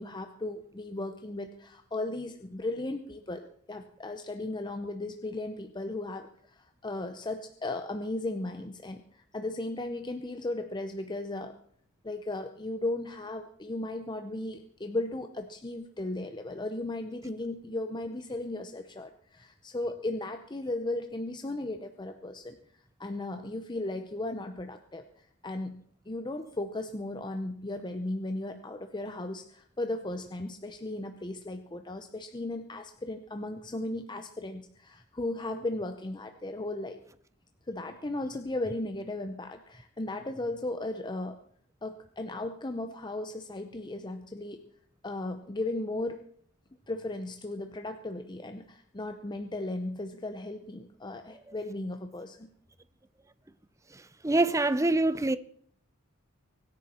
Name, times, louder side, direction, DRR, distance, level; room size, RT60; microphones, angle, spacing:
voice 1, 0.0-11.5 12.0-22.6 23.0-25.1 25.4-37.0 37.7-41.4 41.8-44.6 45.0-46.2 46.9-52.5, left 2 dB, 20° left, 0.7 m, -36 dB
voice 2, 54.2-55.4, right 2 dB, 15° right, 0.5 m, -24 dB
24.5 x 10.5 x 4.4 m
head